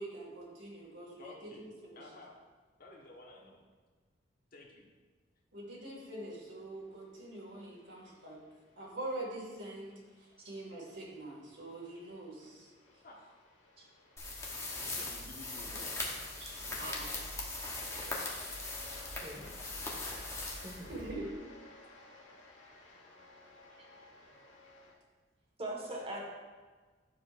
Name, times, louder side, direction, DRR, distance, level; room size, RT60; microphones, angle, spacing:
voice 1, 0.0-2.0 5.5-8.4 8.8-9.9 10.4-12.7 16.6-17.6 20.9-21.4, right 1 dB, 75° right, -4 dB, 2.0 m, -44 dB
voice 2, 1.2-1.7 1.9-2.4 2.8-3.6 4.5-4.9 13.0-13.2 14.7-16.0, left 2 dB, 50° left, -2 dB, 1.4 m, -52 dB
sound 1, 6.6-24.9, left 1 dB, 90° left, 1.2 m, -57 dB
sound 2, 14.2-21.3, left 2 dB, 15° left, 1.0 m, -40 dB
voice 3, 25.6-26.2, right 1 dB, 30° right, -2 dB, 1.5 m, -42 dB
10.0 x 6.9 x 2.5 m, 1.4 s
head